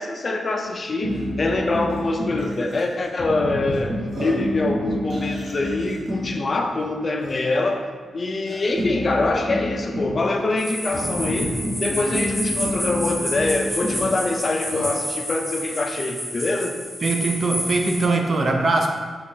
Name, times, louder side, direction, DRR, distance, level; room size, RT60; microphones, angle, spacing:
voice 1, 0.0-7.9 8.1-16.8, left 2 dB, 40° left, 3 dB, 0.3 m, -24 dB
Burping eructation, 0.6-0.7 1.1-1.3 1.9-2.0 2.4-3.1 3.7-3.8 4.1-4.5 5.1-6.1 6.8-6.9 7.2-7.7 8.5-8.8 10.3-11.2 12.1-12.2 12.6-12.7 13.7-15.0, equal, 70° right, 1.0 m, -38 dB
sound 1, 1.0-2.5 3.2-6.4 8.8-10.2 10.9-14.1, equal, 20° right, 1.0 m, -28 dB
sound 2, 10.6-18.0, equal, 5° left, 1.1 m, -30 dB
voice 2, 17.0-18.9, right 3 dB, 45° right, 3 dB, 0.4 m, -21 dB
3.6 x 3.0 x 2.6 m, 1.5 s
cardioid pair, 90°, 0 cm